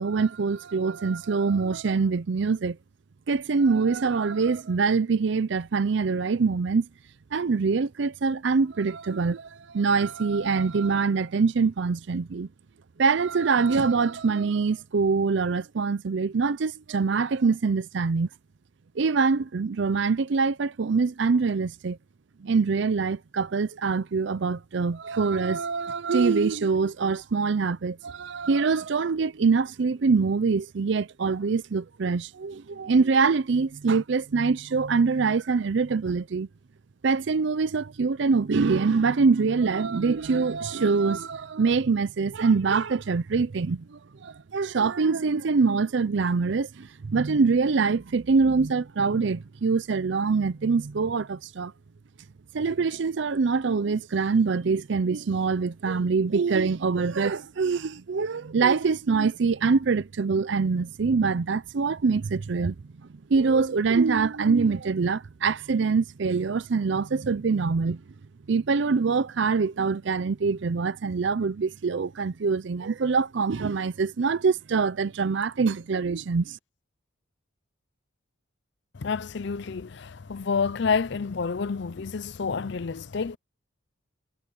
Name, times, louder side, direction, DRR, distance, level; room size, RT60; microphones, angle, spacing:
voice 1, 0.0-2.8 3.3-6.9 7.3-12.5 13.0-18.3 19.0-22.0 22.4-36.5 37.0-51.7 52.5-62.8 63.3-68.0 68.5-76.6, right 4 dB, 60° right, 0.5 m, -24 dB
voice 2, 78.9-83.4, left 5 dB, 55° left, 0.5 m, -29 dB
head